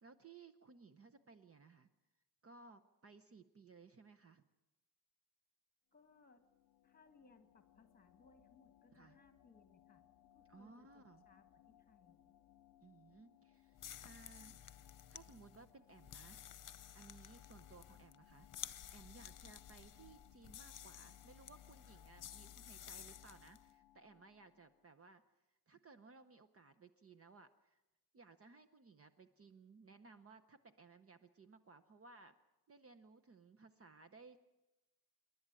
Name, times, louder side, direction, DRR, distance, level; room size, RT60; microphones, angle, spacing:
voice 1, 0.0-1.9 2.4-4.4 8.9-9.2 10.5-11.2 12.8-14.6 15.1-16.4 16.9-25.2 25.5-27.8 28.1-32.4 32.7-34.4, right 4 dB, 35° right, 11 dB, 0.8 m, -61 dB
voice 2, 5.9-6.4 6.8-10.0 10.3-12.2 19.5-19.6, left 4 dB, 25° left, 8 dB, 1.7 m, -67 dB
sound 1, 6.0-24.9, left 12 dB, 75° left, 0.6 m, -68 dB
sound 2, 13.7-23.6, left 10 dB, 55° left, 0.9 m, -54 dB
27.5 x 11.0 x 8.9 m, 1.0 s
wide cardioid pair, 165°, 39 cm